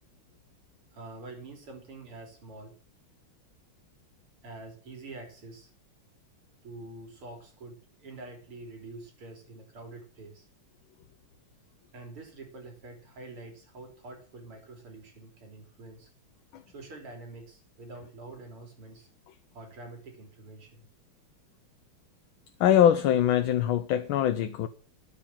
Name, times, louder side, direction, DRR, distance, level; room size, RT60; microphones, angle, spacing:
voice 1, 0.9-2.7 4.4-5.7 6.6-10.5 11.9-16.1 16.7-19.1 19.5-20.8, right 2 dB, 75° right, 4.4 m, -46 dB
voice 2, 22.6-24.7, left 10 dB, 70° left, 1.5 m, -23 dB
10.5 x 8.4 x 7.4 m
omnidirectional pair, 2.4 m